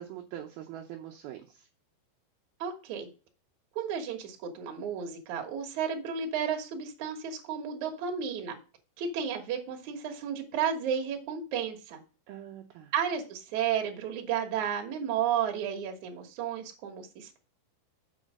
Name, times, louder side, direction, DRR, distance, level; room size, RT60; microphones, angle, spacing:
voice 1, 0.0-1.7 12.3-12.9, right 11 dB, 75° right, 2 dB, 2.4 m, -43 dB
voice 2, 2.6-3.1 3.8-8.6 9.0-12.0 12.9-17.4, right 8 dB, 55° right, 3 dB, 2.4 m, -32 dB
7.3 x 4.9 x 6.3 m, 0.34 s
omnidirectional pair, 4.8 m